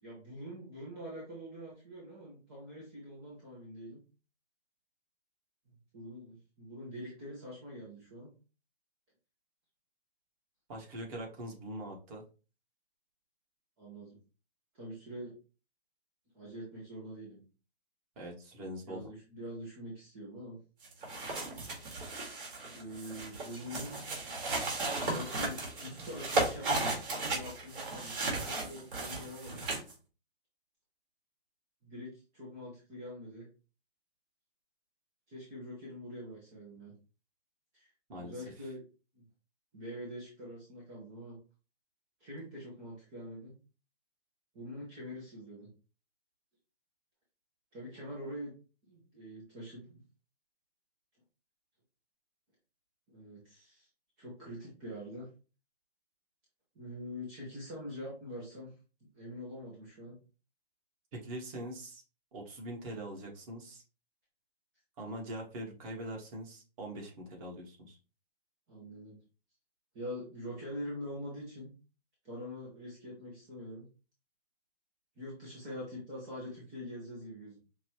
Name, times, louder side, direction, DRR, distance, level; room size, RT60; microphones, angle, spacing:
voice 1, 0.0-4.0 5.7-8.3 13.8-14.2 14.7-15.3 16.3-17.4 18.9-20.6 22.7-24.0 25.1-26.9 27.3-29.6 31.8-33.5 35.3-36.9 37.7-37.9 38.2-38.8 39.1-39.2 39.7-41.4 42.2-43.5 44.5-45.7 47.7-48.5 48.9-50.0 53.1-53.9 54.2-55.3 56.7-58.7 59.0-60.2 68.7-69.2 69.9-71.7 72.2-73.9 75.2-77.6, equal, 10° right, -6 dB, 0.3 m, -44 dB
voice 2, 10.7-12.2 18.2-19.1 38.1-38.7 61.1-62.0 62.3-63.8 65.0-68.0, right 1 dB, 35° right, -1 dB, 1.4 m, -43 dB
sound 1, 20.8-29.9, right 2 dB, 55° right, 2.1 m, -35 dB
5.4 x 2.3 x 3.0 m, 0.34 s
hypercardioid pair, 140°, 32 cm